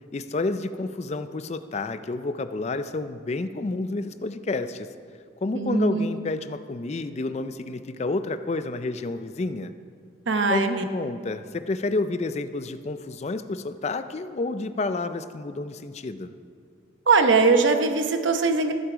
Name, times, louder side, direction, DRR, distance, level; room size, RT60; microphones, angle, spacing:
voice 1, 0.1-4.9 5.4-9.7 10.5-16.3, left 3 dB, 35° left, 11 dB, 0.4 m, -30 dB
voice 2, 5.5-6.1 10.3-10.8 17.1-18.7, right 4 dB, 80° right, 7 dB, 0.9 m, -21 dB
14.0 x 8.4 x 5.0 m, 2.2 s
head